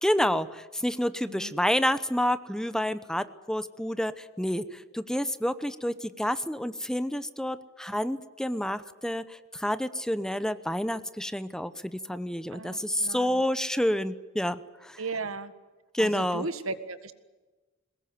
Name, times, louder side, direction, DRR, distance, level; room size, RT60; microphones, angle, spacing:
voice 1, 0.0-9.2 9.5-15.0 15.9-16.4, equal, 5° left, 13 dB, 0.9 m, -29 dB
voice 2, 12.5-13.4 15.0-15.5 16.0-17.1, right 3 dB, 90° right, 11 dB, 1.7 m, -36 dB
23.0 x 20.0 x 9.6 m, 1.2 s
head